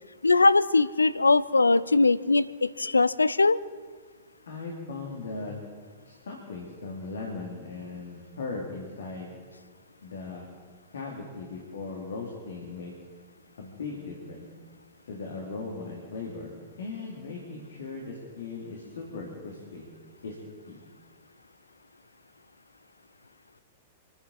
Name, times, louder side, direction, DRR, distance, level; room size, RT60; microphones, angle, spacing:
voice 1, 0.2-3.6, left 3 dB, 80° left, 16 dB, 0.5 m, -21 dB
voice 2, 4.5-5.6 6.0-9.3 10.0-10.4 10.9-12.9 13.6-14.4 15.0-19.9 20.2-20.4 20.6-20.8, left 3 dB, 65° left, -1 dB, 3.2 m, -38 dB
28.5 x 10.5 x 4.4 m, 1.5 s
figure-of-eight pair, 100°, 0 cm